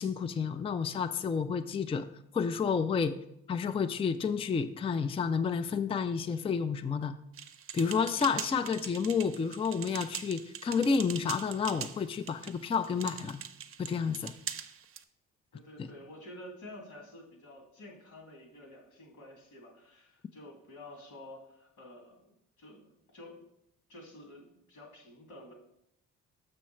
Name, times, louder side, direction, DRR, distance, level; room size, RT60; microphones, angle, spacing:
voice 1, 0.0-2.1 2.3-3.2 3.5-7.1 7.7-13.4 13.8-14.3 15.8-15.9, left 6 dB, 20° left, 10 dB, 0.4 m, -30 dB
sound 1, 7.4-15.0, right 8 dB, 45° right, 0.6 m, -42 dB
voice 2, 15.5-23.4 23.9-25.5, left 1 dB, 85° left, 1 dB, 2.3 m, -50 dB
6.4 x 6.0 x 4.4 m, 0.78 s
cardioid pair, 90°, 30 cm